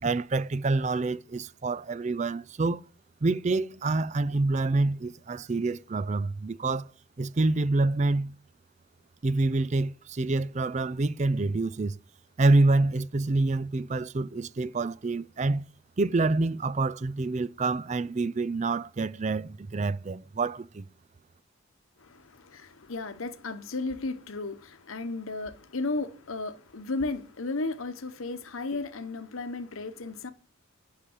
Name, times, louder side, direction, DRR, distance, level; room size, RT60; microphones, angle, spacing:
voice 1, 0.0-2.8 3.2-6.9 7.2-8.4 9.2-11.9 12.4-15.6 16.0-20.9, right 3 dB, 35° right, 0.4 m, -27 dB
voice 2, 22.0-30.3, left 3 dB, 80° left, 1.0 m, -34 dB
10.5 x 6.7 x 7.2 m
head